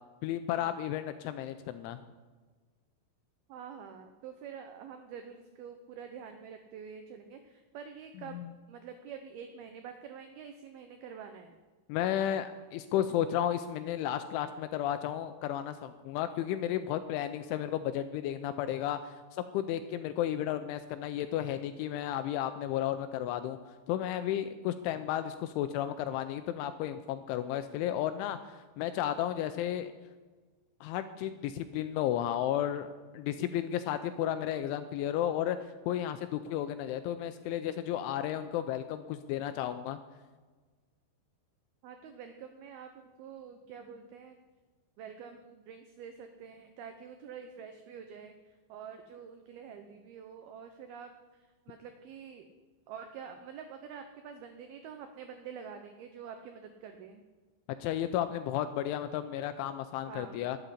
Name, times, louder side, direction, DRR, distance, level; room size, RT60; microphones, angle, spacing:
voice 1, 0.2-2.0 8.3-8.5 11.9-29.9 30.8-35.6 35.9-40.0 57.8-60.6, left 11 dB, 85° left, 10 dB, 2.9 m, -33 dB
voice 2, 3.5-8.4 8.7-11.6 33.4-33.6 41.8-44.4 45.0-52.5 52.9-57.2 60.1-60.5, right 7 dB, 85° right, 6 dB, 2.1 m, -47 dB
12.5 x 8.1 x 9.8 m, 1.4 s
omnidirectional pair, 5.6 m